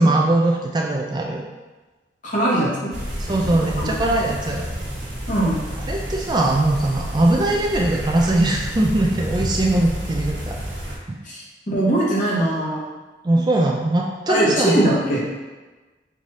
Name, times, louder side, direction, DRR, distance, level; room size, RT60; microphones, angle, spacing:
voice 1, 0.0-1.4 3.2-4.6 5.9-10.6 11.1-11.2 13.2-14.8, right 1 dB, 25° right, 0 dB, 0.4 m, -20 dB
voice 2, 2.2-2.9 3.5-3.9 5.3-5.6 11.2-12.8 14.3-15.2, right 1 dB, 45° left, -6 dB, 1.4 m, -21 dB
sound 1, 2.9-11.0, equal, 90° right, 1.2 m, -30 dB
4.7 x 2.7 x 4.1 m, 1.2 s
head